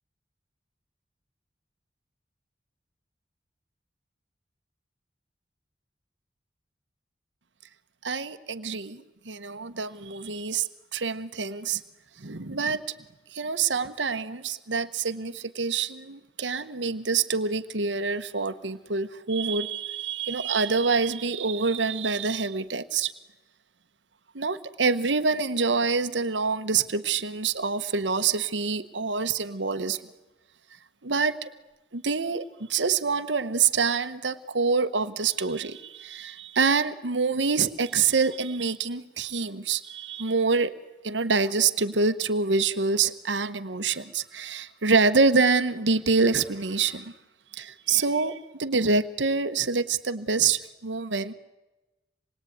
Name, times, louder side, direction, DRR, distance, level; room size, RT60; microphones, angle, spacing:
voice 1, 8.0-11.8 12.2-12.8 13.3-23.1 24.3-30.0 31.0-31.5 31.9-40.7 41.0-47.1 47.5-51.3, right 4 dB, 90° right, 10 dB, 1.2 m, -26 dB
27.0 x 21.5 x 9.4 m, 1.1 s
head